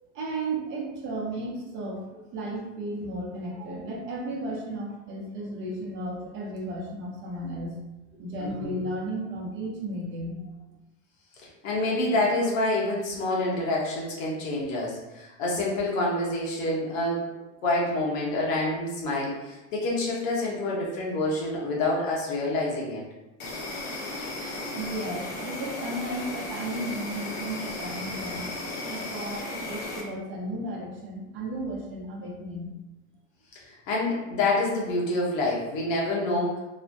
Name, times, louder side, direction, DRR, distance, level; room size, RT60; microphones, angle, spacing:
voice 1, 0.1-7.8 8.2-10.5 24.7-28.4 28.9-32.7, right 1 dB, 30° right, -2 dB, 0.7 m, -34 dB
voice 2, 11.6-17.3 17.6-23.0 33.5-36.6, left 2 dB, 85° left, -4 dB, 1.2 m, -27 dB
Insect, 23.4-30.0, left 2 dB, 60° left, 0.9 m, -35 dB
3.1 x 2.1 x 2.6 m, 1.0 s
supercardioid pair, 150°, 39 cm